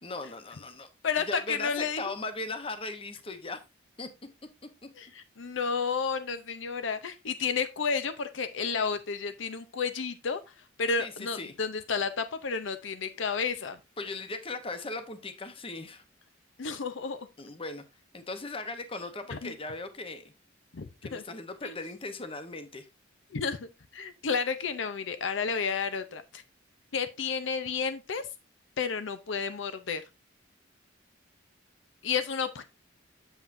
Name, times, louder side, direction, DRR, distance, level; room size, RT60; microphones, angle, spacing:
voice 1, 0.0-0.9 1.3-3.6 4.0-4.1 11.0-11.5 14.0-16.0 17.4-17.8 18.1-20.3 21.0-22.9, left 2 dB, 30° left, 0.9 m, -38 dB
voice 2, 1.0-2.1 5.0-10.4 10.8-13.8 16.6-17.3 19.3-19.5 20.7-21.2 21.6-21.7 23.3-26.4 26.9-28.2 28.8-30.0 32.0-32.6, left 5 dB, 70° left, 0.6 m, -31 dB
8.0 x 7.2 x 2.6 m
head